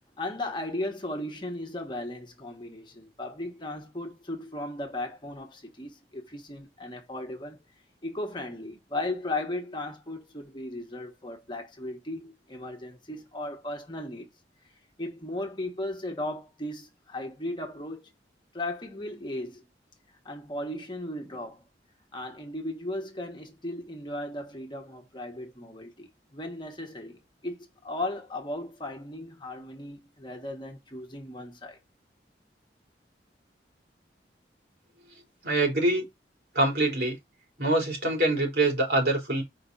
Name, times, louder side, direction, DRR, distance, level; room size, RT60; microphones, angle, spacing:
voice 1, 0.2-7.6 8.0-14.3 15.0-18.1 18.5-19.6 20.2-21.6 22.1-31.8, left 1 dB, 25° left, 1.4 m, -36 dB
voice 2, 35.4-36.1 36.5-37.2 37.6-39.4, right 2 dB, 60° right, 3.8 m, -24 dB
5.0 x 3.8 x 5.4 m
head